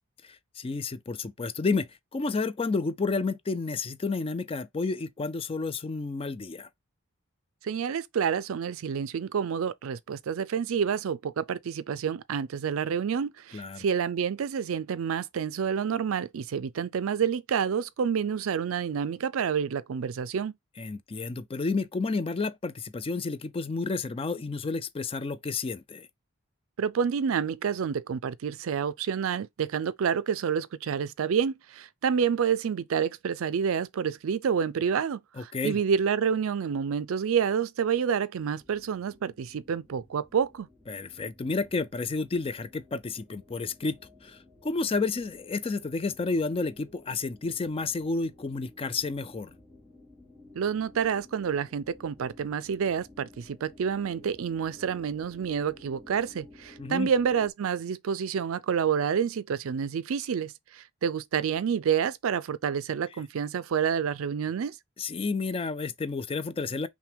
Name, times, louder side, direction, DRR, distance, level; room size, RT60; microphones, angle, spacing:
voice 1, 0.2-6.7 13.5-13.8 20.8-26.1 35.4-35.8 40.9-49.5 56.8-57.1 65.0-66.9, left 3 dB, 25° left, 0.4 m, -31 dB
voice 2, 7.6-20.5 26.8-40.7 50.5-64.7, right 7 dB, 70° right, 0.4 m, -28 dB
sound 1, 38.4-57.5, left 1 dB, ahead, 1.3 m, -54 dB
5.7 x 2.2 x 3.3 m
head